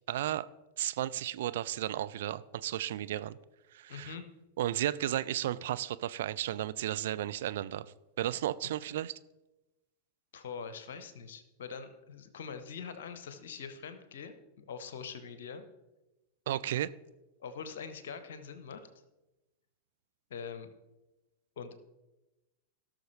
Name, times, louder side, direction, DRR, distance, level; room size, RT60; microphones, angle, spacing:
voice 1, 0.1-0.5 0.8-3.4 3.7-4.1 4.6-9.1 16.5-16.9, right 12 dB, 55° right, 14 dB, 0.3 m, -34 dB
voice 2, 3.9-4.2 10.3-15.6 17.4-18.9 20.3-20.7 21.6-21.8, left 6 dB, 60° left, 11 dB, 1.0 m, -43 dB
17.0 x 6.3 x 3.3 m, 1.0 s
figure-of-eight pair, 90°, 0 cm